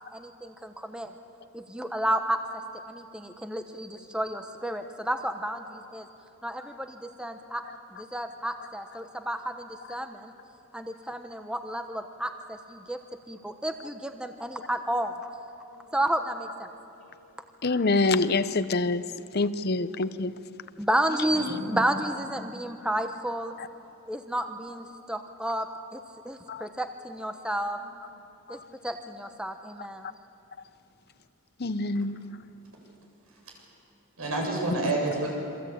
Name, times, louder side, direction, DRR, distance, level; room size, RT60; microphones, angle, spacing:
voice 1, 0.1-1.1 1.5-2.4 2.9-6.1 6.4-7.6 7.9-10.3 10.7-13.0 13.3-15.2 15.9-16.7 20.8-23.5 24.1-27.8 28.5-30.1, right 1 dB, 5° right, 0.9 m, -31 dB
voice 2, 17.6-19.0 19.3-20.3 26.5-26.7 28.5-28.7 31.6-32.2, left 3 dB, 50° left, 0.8 m, -26 dB
voice 3, 21.3-21.8 34.2-35.3, right 2 dB, 85° right, 7.9 m, -29 dB
27.5 x 25.0 x 8.7 m
head